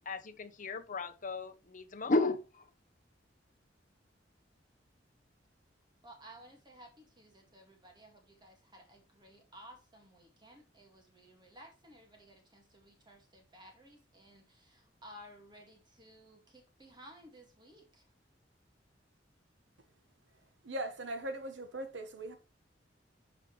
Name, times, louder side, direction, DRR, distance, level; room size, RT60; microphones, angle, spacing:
voice 1, 0.1-2.6, left 2 dB, 45° left, 0.9 m, -34 dB
voice 2, 6.0-18.0, equal, 25° right, 2.1 m, -56 dB
voice 3, 20.6-22.4, right 1 dB, 70° right, 1.4 m, -39 dB
11.0 x 5.0 x 3.2 m
head